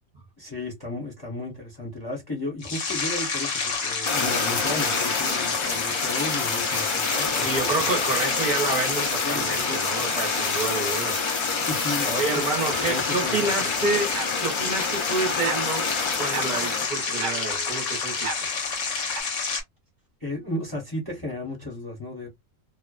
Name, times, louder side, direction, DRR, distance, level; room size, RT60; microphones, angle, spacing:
voice 1, 0.4-7.7 9.2-9.8 11.7-13.7 20.2-22.3, left 2 dB, 20° left, 0.8 m, -34 dB
sound 1, 2.6-19.6, left 4 dB, 70° left, 1.1 m, -29 dB
Fire, 4.1-16.9, left 4 dB, 50° left, 0.3 m, -28 dB
voice 2, 7.4-11.1 12.1-14.1 14.4-15.8 16.2-18.5, right 3 dB, 40° right, 0.8 m, -28 dB
sound 2, 11.6-19.2, right 5 dB, 70° right, 0.9 m, -39 dB
2.4 x 2.1 x 2.3 m
omnidirectional pair, 1.4 m